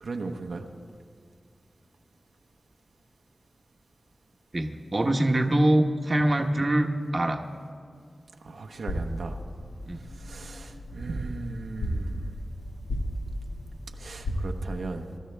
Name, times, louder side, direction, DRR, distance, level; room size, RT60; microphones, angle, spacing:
voice 1, 0.0-0.7 8.4-9.4 10.1-12.3 14.0-15.1, right 3 dB, 80° right, 3 dB, 0.9 m, -36 dB
voice 2, 4.5-7.4 9.9-10.0, right 1 dB, 35° right, 3 dB, 1.0 m, -24 dB
sound 1, 8.9-14.5, equal, 85° left, 1.8 m, -35 dB
23.0 x 13.0 x 3.4 m, 2.2 s
wide cardioid pair, 105°, 0 cm